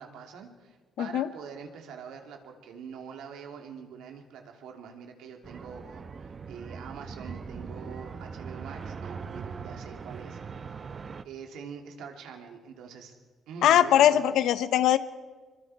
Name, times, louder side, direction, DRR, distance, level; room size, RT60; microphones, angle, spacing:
voice 1, 0.0-10.4 11.2-13.2 13.5-14.2, right 6 dB, 85° right, 3 dB, 2.9 m, -44 dB
voice 2, 1.0-1.3 13.6-15.0, left 11 dB, 80° left, 13 dB, 0.9 m, -21 dB
sound 1, 5.4-11.2, right 5 dB, 40° right, 1.0 m, -40 dB
24.0 x 24.0 x 4.9 m, 1.4 s
cardioid pair, 90°, 0 cm